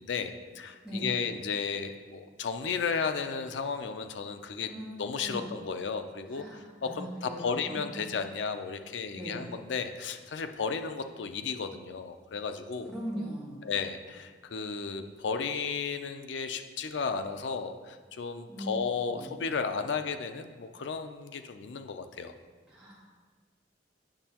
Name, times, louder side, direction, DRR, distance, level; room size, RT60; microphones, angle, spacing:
voice 1, 0.0-4.7 5.0-13.0 13.6-22.3, left 5 dB, 85° left, 8 dB, 0.5 m, -34 dB
voice 2, 0.8-1.2 4.7-5.5 6.3-8.1 9.2-9.5 12.9-13.7 18.5-18.7 19.1-19.3 22.7-23.0, equal, 5° right, -8 dB, 1.7 m, -40 dB
8.9 x 6.1 x 2.9 m, 1.5 s
head